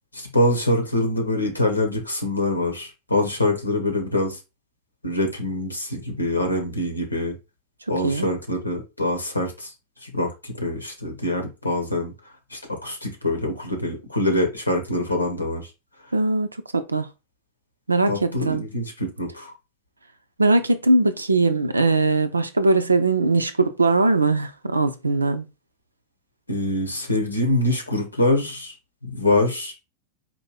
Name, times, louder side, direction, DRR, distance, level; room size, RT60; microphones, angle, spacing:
voice 1, 0.1-4.4 5.0-7.3 7.9-9.7 10.0-12.1 12.5-15.7 18.1-19.5 26.5-28.7 29.0-29.7, left 1 dB, 85° left, 1.2 m, -24 dB
voice 2, 16.1-16.5 16.7-17.1 17.9-18.6 20.4-25.5, right 2 dB, 80° right, 0.5 m, -20 dB
4.5 x 2.7 x 4.2 m
figure-of-eight pair, 90°, 0 cm